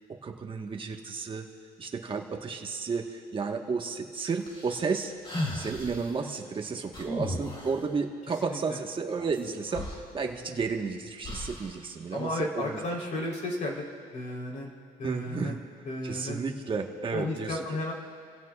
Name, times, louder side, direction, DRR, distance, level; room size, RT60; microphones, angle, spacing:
voice 1, 0.1-1.5 1.8-5.1 5.5-12.8 15.0-15.6 16.0-17.6, right 4 dB, 30° right, 2 dB, 1.4 m, -32 dB
sound 1, 4.5-6.1 6.9-7.9 9.4-9.5 9.7-10.7 11.2-11.8, left 1 dB, 30° left, 3.5 m, -35 dB
voice 2, 12.1-13.8 14.1-14.7 15.0-15.6 15.9-16.4 17.1-17.9, left 1 dB, 50° left, -2 dB, 3.8 m, -33 dB
29.5 x 16.0 x 2.4 m, 2.3 s
cardioid pair, 110°, 17 cm